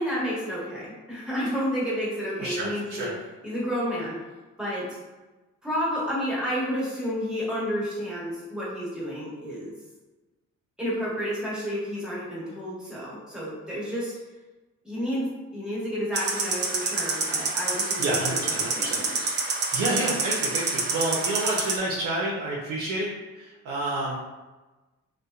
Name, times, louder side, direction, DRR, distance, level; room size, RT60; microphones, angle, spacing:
voice 1, 0.0-3.1 3.4-4.2 4.6-5.0 5.6-9.7 10.8-14.1 14.8-19.2 19.9-20.1, equal, 5° right, -8 dB, 1.1 m, -31 dB
voice 2, 2.4-3.1 18.0-19.0 19.7-23.1 23.3-24.2, right 2 dB, 85° right, -4 dB, 0.5 m, -29 dB
sound 1, 16.1-21.8, right 3 dB, 35° right, 0.4 m, -27 dB
2.7 x 2.1 x 2.3 m, 1.2 s
cardioid pair, 90°, 30 cm